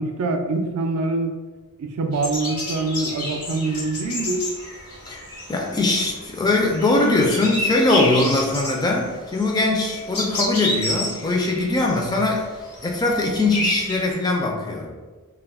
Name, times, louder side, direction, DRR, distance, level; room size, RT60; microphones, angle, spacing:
voice 1, 0.0-1.3 1.8-4.5, right 3 dB, 70° right, 5 dB, 0.4 m, -24 dB
sound 1, 2.1-14.1, left 1 dB, 80° left, 1.0 m, -30 dB
voice 2, 5.5-12.5 12.8-14.9, left 2 dB, 20° left, 0 dB, 0.3 m, -21 dB
2.3 x 2.0 x 3.4 m, 1.3 s
head